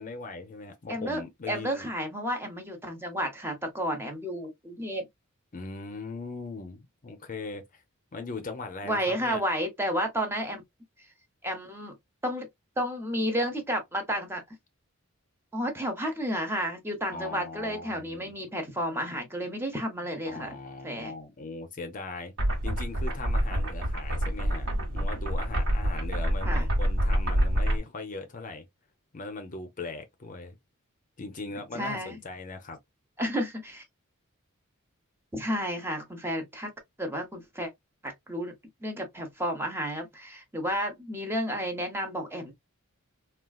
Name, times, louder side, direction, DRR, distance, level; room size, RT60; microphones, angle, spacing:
voice 1, 0.0-1.9 5.5-7.8 8.1-9.4 17.1-18.3 20.3-22.3 22.6-24.7 24.9-28.7 29.1-30.6 31.2-32.8, left 3 dB, 40° left, 0.6 m, -39 dB
voice 2, 0.9-1.2 1.5-5.0 8.8-10.6 11.4-11.9 12.2-12.5 12.8-14.4 15.5-20.5 20.8-21.1 24.7-25.1 26.5-26.7 31.7-32.2 33.2-33.8 35.3-36.7 37.0-37.7 38.0-38.5 38.8-42.5, equal, 10° right, 0.8 m, -31 dB
sound 1, 22.4-27.8, equal, 65° right, 1.2 m, -27 dB
3.7 x 2.4 x 2.3 m
head